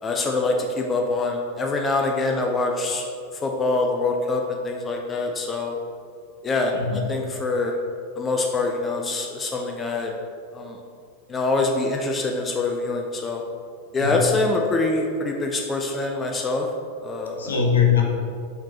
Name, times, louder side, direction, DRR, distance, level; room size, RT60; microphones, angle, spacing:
voice 1, 0.0-3.0 3.3-5.8 6.4-7.8 8.2-10.1 10.5-10.8 11.3-13.4 13.9-16.7 17.0-17.6, left 3 dB, 20° left, 1 dB, 0.4 m, -25 dB
voice 2, 6.7-7.3 14.0-14.3 17.3-18.0, left 7 dB, 70° left, 0 dB, 0.7 m, -22 dB
4.3 x 4.0 x 2.9 m, 2.3 s
figure-of-eight pair, 90°, 0 cm